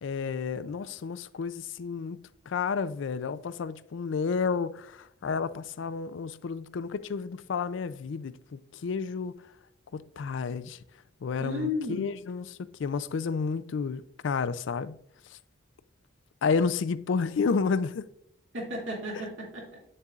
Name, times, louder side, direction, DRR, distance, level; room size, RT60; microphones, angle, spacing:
voice 1, 0.0-2.2 2.5-9.3 9.9-10.8 11.2-12.4 12.8-15.0 15.3-15.4 16.4-18.0, left 5 dB, 70° left, 0.4 m, -31 dB
voice 2, 11.4-12.1 18.5-19.8, left 2 dB, 75° right, 2.3 m, -33 dB
8.8 x 6.6 x 2.4 m
head